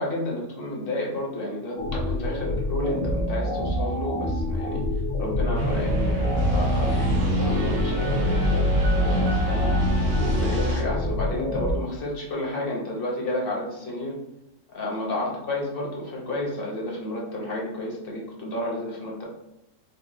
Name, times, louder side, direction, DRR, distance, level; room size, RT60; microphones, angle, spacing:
voice 1, 0.0-4.8 5.2-9.8 10.4-14.1 14.7-19.2, left 1 dB, 55° left, -3 dB, 0.8 m, -31 dB
sound 1, 1.8-11.8, left 1 dB, 90° left, 1.0 m, -27 dB
sound 2, 5.5-10.8, equal, 85° right, 1.1 m, -24 dB
3.9 x 2.1 x 2.5 m, 0.88 s
omnidirectional pair, 1.4 m